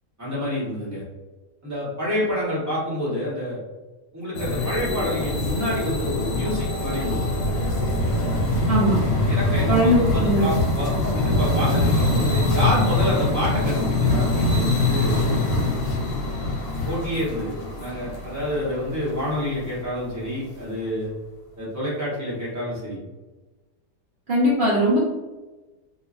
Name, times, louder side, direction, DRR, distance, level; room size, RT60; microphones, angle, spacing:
voice 1, 0.2-1.0 1.6-3.6 4.1-7.2 9.3-15.7 16.9-21.1 21.6-23.0, equal, 15° right, -8 dB, 0.8 m, -28 dB
sound 1, 4.3-19.6, left 2 dB, 85° left, 1.3 m, -23 dB
voice 2, 8.7-9.0 9.7-10.5 24.3-25.0, right 1 dB, 65° right, -7 dB, 0.5 m, -20 dB
2.8 x 2.5 x 2.4 m, 1.2 s
omnidirectional pair, 1.8 m